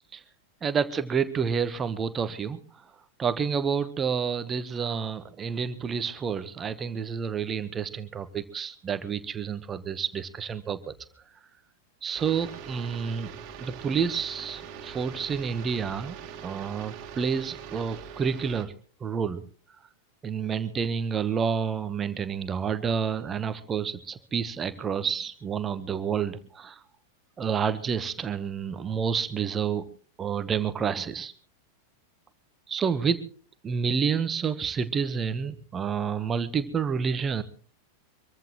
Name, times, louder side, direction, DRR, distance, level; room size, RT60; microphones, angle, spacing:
voice 1, 0.6-2.6 3.2-10.9 12.0-13.3 13.6-16.2 16.4-18.7 19.0-19.4 20.2-26.8 27.4-29.9 30.2-31.3 32.7-33.3 33.6-37.4, right 6 dB, 20° right, 12 dB, 1.1 m, -29 dB
sound 1, 12.1-18.6, right 8 dB, 40° right, 2.5 m, -42 dB
25.0 x 15.0 x 3.0 m, 0.41 s
figure-of-eight pair, 90°, 0 cm